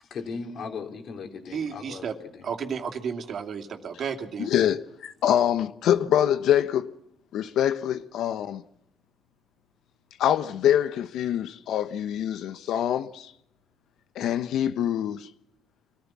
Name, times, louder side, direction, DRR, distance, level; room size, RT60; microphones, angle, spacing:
voice 1, 0.0-2.5, left 5 dB, 65° left, 4.0 m, -38 dB
voice 2, 1.5-2.1 2.4-4.5, right 6 dB, 60° right, 2.8 m, -32 dB
voice 3, 4.4-6.9 7.3-8.6 10.2-13.3 14.1-15.3, left 10 dB, 80° left, 1.0 m, -25 dB
24.5 x 15.0 x 7.4 m
cardioid pair, 90°, 0 cm